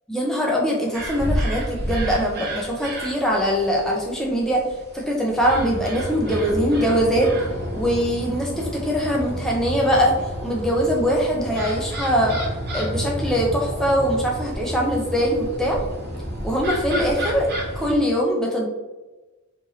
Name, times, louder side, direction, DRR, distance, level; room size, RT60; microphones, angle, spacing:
voice 1, 0.1-4.6 4.9-7.3 7.7-10.1 10.4-12.4 12.7-15.8 16.4-17.5 17.8-18.7, equal, ahead, -3 dB, 0.4 m, -22 dB
sound 1, 0.9-18.0, equal, 45° right, 0.6 m, -30 dB
3.1 x 2.4 x 2.7 m, 1.1 s
head